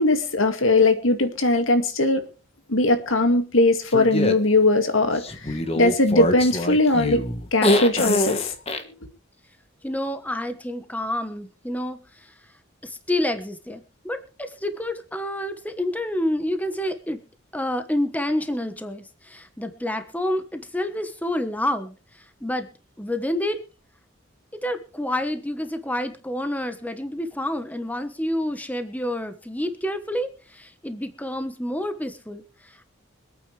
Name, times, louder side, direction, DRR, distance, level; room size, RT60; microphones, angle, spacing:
voice 1, 0.0-2.2 2.7-7.2 7.5-8.5 8.8-8.9, left 2 dB, 90° left, 2.2 m, -20 dB
sound 1, 3.9-4.3 5.2-8.8, left 1 dB, 30° left, 1.5 m, -23 dB
voice 2, 9.8-12.3 12.8-17.2 17.5-22.7 23.0-23.6 24.6-32.9, left 1 dB, 10° left, 1.2 m, -28 dB
25.0 x 9.2 x 3.4 m
head